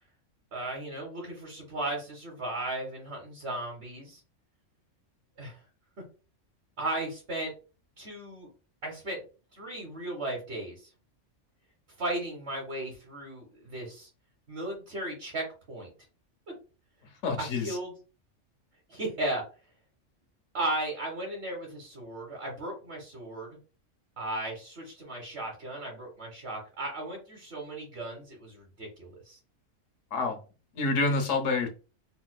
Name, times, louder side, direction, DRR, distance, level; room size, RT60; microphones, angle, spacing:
voice 1, 0.5-4.2 5.4-5.6 6.8-7.5 8.0-8.5 8.8-9.2 9.5-10.9 12.0-14.1 14.5-15.9 17.4-17.9 18.9-19.4 20.5-23.6 24.2-29.4, right 1 dB, 60° right, 1.2 m, -36 dB
voice 2, 17.2-17.7 30.1-30.4 30.7-31.7, left 3 dB, 85° left, 1.2 m, -27 dB
4.3 x 2.3 x 2.2 m
omnidirectional pair, 1.3 m